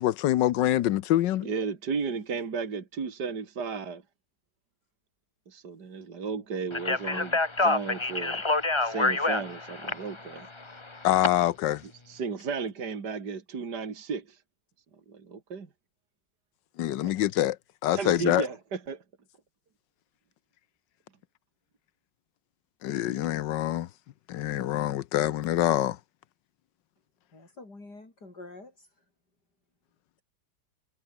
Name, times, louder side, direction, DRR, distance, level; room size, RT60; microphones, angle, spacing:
voice 1, 0.0-1.5 7.1-7.2 11.0-11.8 16.8-17.6 17.8-18.5 22.8-23.9 24.3-26.0, left 13 dB, 75° left, 1.4 m, -25 dB
voice 2, 1.4-4.0 5.5-8.4 8.8-10.5 12.1-14.4 15.1-15.7 17.0-17.1 17.9-19.0, right 5 dB, 60° right, 3.0 m, -34 dB
Speech, 6.7-11.3, left 2 dB, 15° left, 1.3 m, -27 dB
voice 3, 27.3-29.0, left 2 dB, 60° left, 6.6 m, -47 dB
omnidirectional pair, 2.0 m